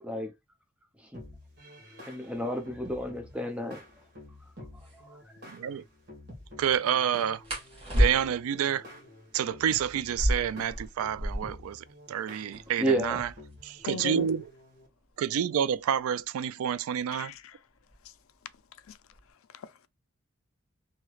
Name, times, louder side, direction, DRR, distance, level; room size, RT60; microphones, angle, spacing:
sound 1, 1.1-14.9, left 1 dB, 50° right, 1.3 m, -49 dB
voice 1, 2.1-3.8 5.0-5.2 12.8-13.2, right 1 dB, 5° right, 0.5 m, -30 dB
sound 2, 4.8-5.0 7.4-8.6 10.0-11.7 12.0-12.1 12.3-12.8 13.5-16.0 17.0-17.3 17.8-18.2 18.6-19.3, equal, 25° right, 1.4 m, -30 dB
voice 2, 5.5-5.8 6.6-7.4 7.9-8.8 9.3-13.3 13.6-14.4 15.2-17.3, right 8 dB, 85° right, 0.3 m, -29 dB
voice 3, 13.9-14.3 17.1-17.6 18.0-18.1 18.8-19.0 19.5-19.9, left 7 dB, 80° left, 0.4 m, -39 dB
3.1 x 2.8 x 2.3 m
head